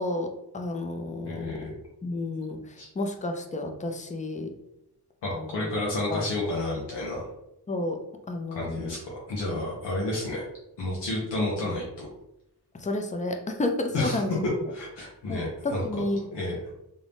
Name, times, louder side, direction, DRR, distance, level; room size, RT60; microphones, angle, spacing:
voice 1, 0.0-1.6 2.0-4.5 5.3-5.7 6.1-6.3 7.7-8.0 8.3-9.0 12.7-14.7 15.3-16.3, left 2 dB, 20° left, 4 dB, 0.5 m, -31 dB
voice 2, 1.2-1.7 2.8-2.9 5.2-7.3 8.5-10.5 10.8-12.1 13.9-14.2 14.7-15.8 16.3-16.6, left 2 dB, 85° left, -5 dB, 1.2 m, -31 dB
3.7 x 2.6 x 3.4 m, 0.84 s
wide cardioid pair, 120°, 41 cm